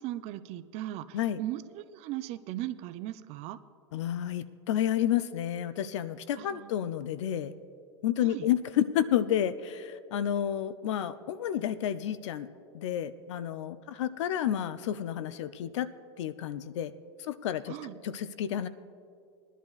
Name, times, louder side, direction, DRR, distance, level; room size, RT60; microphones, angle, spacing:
voice 1, 0.0-3.6 6.4-6.7 8.2-8.5 17.7-18.0, right 14 dB, 45° right, 13 dB, 0.5 m, -38 dB
voice 2, 3.9-7.5 8.0-12.5 12.7-15.9 16.2-16.9 17.2-17.7 18.0-18.7, left 10 dB, 80° left, 14 dB, 0.5 m, -30 dB
21.5 x 11.0 x 2.4 m, 2.4 s
supercardioid pair, 120°, 15 cm